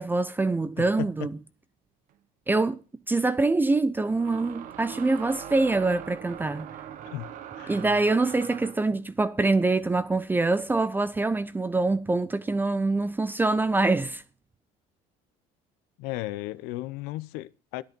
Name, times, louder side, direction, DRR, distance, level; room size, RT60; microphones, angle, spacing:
voice 1, 0.0-1.3 2.5-2.8 3.1-6.7 7.7-14.2, right 3 dB, 10° right, 0.6 m, -25 dB
voice 2, 0.8-1.3 7.1-7.8 16.0-17.8, left 17 dB, 90° left, 0.7 m, -35 dB
sound 1, 2.1-2.2 4.1-8.9, right 10 dB, 55° right, 1.0 m, -41 dB
13.5 x 10.5 x 5.3 m
cardioid pair, 125°, 16 cm